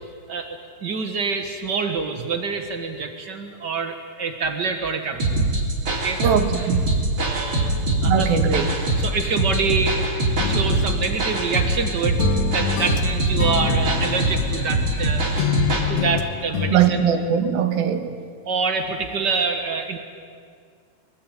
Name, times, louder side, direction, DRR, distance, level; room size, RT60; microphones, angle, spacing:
voice 1, 0.3-5.5 5.9-6.2 7.2-7.8 8.0-8.3 9.0-12.2 12.5-15.3 15.9-17.0 18.4-20.0, right 5 dB, 90° right, 6 dB, 0.9 m, -26 dB
sound 1, 5.2-15.9, right 2 dB, 30° right, 4.1 m, -23 dB
voice 2, 6.2-6.9 8.1-8.7 16.7-18.1, right 8 dB, 75° right, 8 dB, 3.2 m, -20 dB
sound 2, 10.4-11.9 12.2-15.1 15.4-16.8, left 10 dB, 65° left, 2.1 m, -27 dB
24.0 x 22.0 x 9.2 m, 2.2 s
omnidirectional pair, 4.5 m